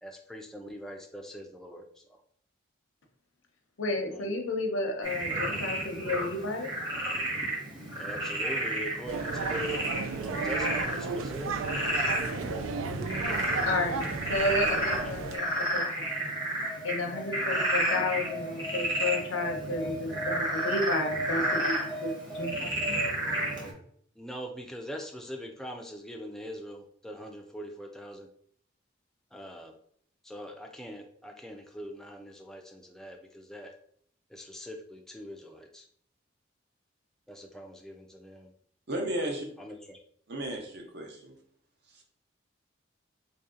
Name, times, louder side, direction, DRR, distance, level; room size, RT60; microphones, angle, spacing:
voice 1, 0.0-1.8 4.1-4.4 8.0-11.6 14.6-15.2 24.2-28.3 29.3-29.7 30.2-33.7 34.3-35.8 37.3-38.5 39.6-40.0, equal, 5° left, 3 dB, 0.3 m, -42 dB
voice 2, 3.8-6.7 13.6-15.8 16.8-23.1, left 2 dB, 85° left, 4 dB, 0.7 m, -32 dB
Frog, 5.0-23.7, right 1 dB, 20° right, 0.9 m, -31 dB
sound 1, 9.1-15.4, right 4 dB, 90° right, 0.4 m, -35 dB
voice 3, 38.9-39.5 40.3-41.4 41.9-42.0, right 1 dB, 55° right, 1 dB, 0.7 m, -34 dB
3.1 x 2.7 x 3.7 m, 0.63 s
head